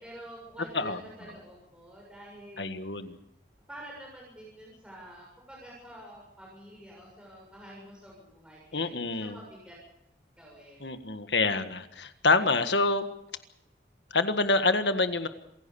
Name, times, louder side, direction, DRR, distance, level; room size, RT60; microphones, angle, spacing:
voice 1, 0.0-2.7 3.0-3.1 3.7-9.8 10.4-10.8, right 1 dB, 5° right, -4 dB, 7.2 m, -48 dB
voice 2, 2.6-3.2 8.7-9.4 10.8-13.0 14.1-15.3, left 3 dB, 90° left, 9 dB, 1.7 m, -26 dB
27.0 x 17.0 x 7.0 m, 0.84 s
head